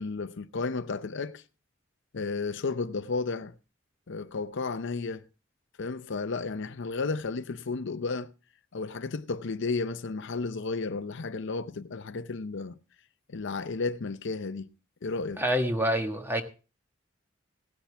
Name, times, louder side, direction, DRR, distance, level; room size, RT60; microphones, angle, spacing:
voice 1, 0.0-1.4 2.1-3.5 4.1-5.2 5.8-8.3 8.7-12.8 13.3-14.7 15.0-15.4, left 4 dB, 65° left, 0.6 m, -33 dB
voice 2, 15.4-16.4, equal, 10° right, 1.4 m, -27 dB
17.0 x 10.0 x 3.4 m
head